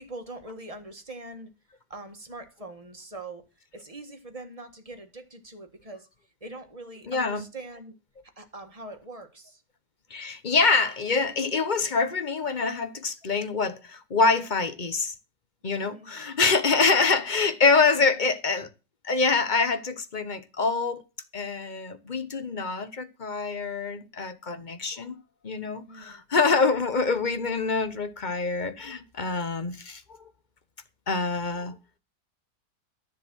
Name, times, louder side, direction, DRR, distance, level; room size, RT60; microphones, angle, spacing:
voice 1, 0.0-1.5 1.9-3.5 3.7-6.1 6.4-8.0 8.4-9.6 15.8-16.2 16.9-17.1 17.9-18.2 23.9-24.1 25.9-26.2 26.5-26.8, right 2 dB, 20° right, 1.7 m, -43 dB
voice 2, 7.1-7.4 10.1-15.1 15.6-18.7 19.0-21.0 21.3-25.2 25.4-30.3 31.1-31.8, left 4 dB, 35° left, 1.0 m, -25 dB
12.5 x 7.2 x 6.2 m
omnidirectional pair, 1.8 m